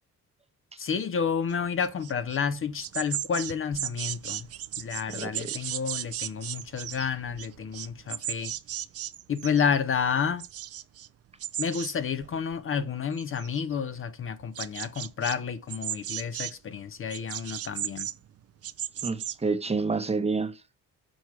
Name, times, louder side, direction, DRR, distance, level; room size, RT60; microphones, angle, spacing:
voice 1, 0.8-4.5 4.8-8.5 9.3-10.4 11.6-18.1, left 6 dB, 45° left, 0.7 m, -30 dB
sound 1, 1.5-2.4 2.6-9.8 10.1-11.1 11.4-11.9 12.2-12.8 13.1-13.8 14.3-15.4 15.7-16.6 17.1-19.4, right 12 dB, 50° right, 0.5 m, -36 dB
voice 2, 5.1-5.6 19.0-20.6, right 4 dB, 20° right, 0.9 m, -29 dB
6.4 x 4.6 x 4.6 m
cardioid pair, 90°, 30 cm